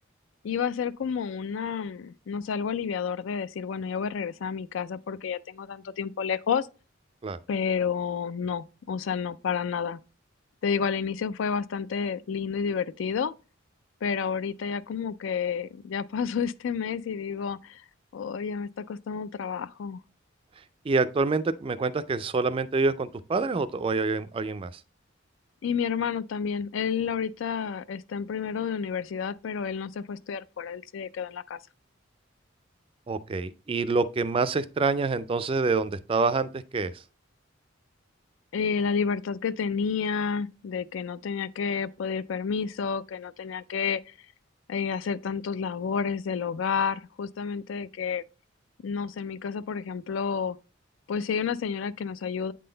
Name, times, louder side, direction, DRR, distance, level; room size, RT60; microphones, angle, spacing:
voice 1, 0.4-6.7 7.5-10.0 10.6-13.3 14.0-17.8 18.1-20.0 25.6-31.6 38.5-44.1 44.7-48.2 48.8-50.6 51.1-52.5, left 6 dB, 70° left, 0.4 m, -30 dB
voice 2, 20.8-24.8 33.1-37.0, right 3 dB, 25° right, 0.3 m, -26 dB
8.4 x 3.8 x 3.8 m
head